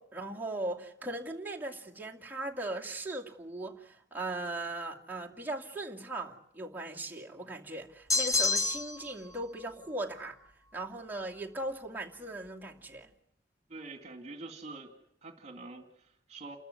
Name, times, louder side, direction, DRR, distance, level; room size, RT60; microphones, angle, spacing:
voice 1, 0.0-10.4 10.7-13.1, right 2 dB, 10° right, -2 dB, 2.5 m, -38 dB
sound 1, 8.1-9.1, left 4 dB, 20° left, 1.0 m, -28 dB
voice 2, 13.7-14.9 15.2-16.6, right 3 dB, 40° right, 5 dB, 2.3 m, -45 dB
29.5 x 13.5 x 9.7 m, 0.76 s
head